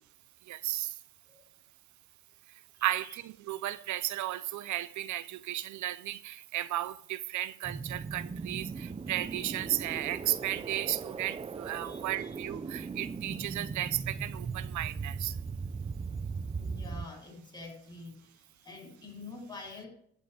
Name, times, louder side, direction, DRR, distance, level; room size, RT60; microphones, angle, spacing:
voice 1, 0.5-0.9 2.8-15.3, right 13 dB, 75° right, 0.6 m, -34 dB
sound 1, 7.6-17.1, right 5 dB, 20° right, 0.5 m, -38 dB
voice 2, 11.8-12.4 16.6-19.9, left 3 dB, 15° left, 6.4 m, -47 dB
12.5 x 5.5 x 8.8 m
cardioid pair, 90°, 30 cm